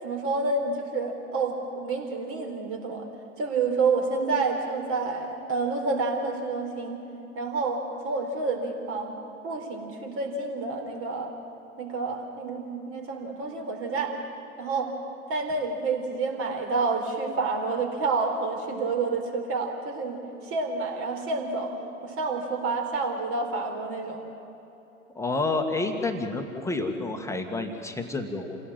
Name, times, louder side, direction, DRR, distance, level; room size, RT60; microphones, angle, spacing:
voice 1, 0.0-3.1 3.4-7.0 7.3-11.3 11.8-14.1 14.6-14.9 15.3-21.8 22.0-24.2, right 3 dB, 35° right, 3 dB, 4.1 m, -29 dB
voice 2, 25.1-28.6, left 3 dB, 5° left, 4 dB, 1.8 m, -29 dB
28.0 x 17.0 x 7.5 m, 3.0 s
hypercardioid pair, 105°, 40 cm